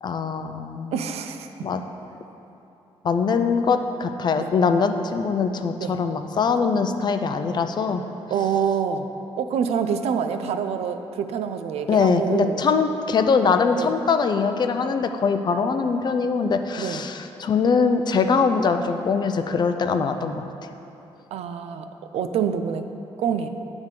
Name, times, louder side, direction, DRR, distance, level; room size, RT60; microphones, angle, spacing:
voice 1, 0.0-1.0 1.6-1.8 3.0-8.0 11.9-20.4, left 5 dB, 45° left, 7 dB, 0.4 m, -22 dB
voice 2, 0.9-1.5 4.4-4.5 5.8-6.0 8.3-9.1 9.4-12.6 13.7-13.9 16.8-17.0 21.3-21.9 22.1-22.9 23.2-23.5, right 7 dB, 80° right, 8 dB, 0.4 m, -26 dB
9.0 x 3.5 x 6.6 m, 3.0 s
cardioid pair, 115°, 10 cm